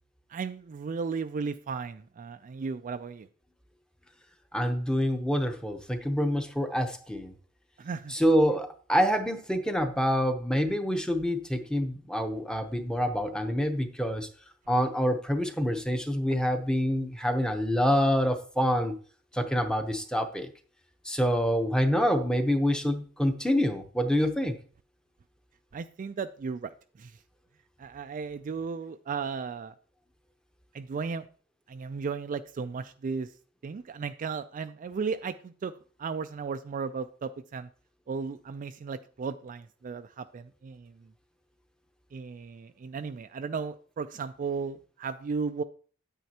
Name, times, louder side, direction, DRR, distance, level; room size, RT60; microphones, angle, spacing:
voice 1, 0.3-3.3 7.8-8.1 25.7-26.7 27.0-27.2 27.8-29.7 30.7-31.2 31.7-33.3 33.6-35.7 36.0-37.7 38.1-40.9 42.1-45.6, right 5 dB, 40° right, 9 dB, 0.3 m, -35 dB
voice 2, 4.5-7.3 8.1-14.3 14.7-19.0 19.3-20.5 21.1-24.5, equal, 5° left, 6 dB, 0.8 m, -26 dB
9.2 x 8.8 x 2.9 m, 0.43 s
head